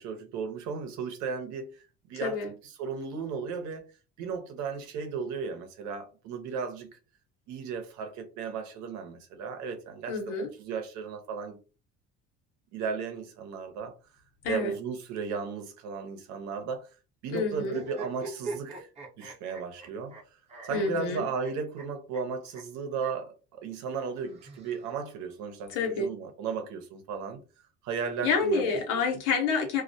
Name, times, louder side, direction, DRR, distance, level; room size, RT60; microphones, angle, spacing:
voice 1, 0.0-2.4 2.8-3.8 4.2-7.0 7.5-11.6 12.7-13.9 14.5-16.8 17.2-18.9 19.2-20.2 20.6-27.4 27.8-28.7, right 5 dB, 70° right, 0.7 m, -35 dB
voice 2, 2.2-2.5 10.1-10.5 14.4-14.8 17.3-17.8 20.7-21.3 25.7-26.1 28.2-29.8, left 4 dB, 80° left, 0.9 m, -28 dB
sound 1, 17.7-20.2 20.5-21.8 22.1-22.2 22.5-22.6 23.0-23.1 24.2-25.2, right 3 dB, 20° right, 0.7 m, -42 dB
2.3 x 2.1 x 2.6 m
cardioid pair, 115°, 30 cm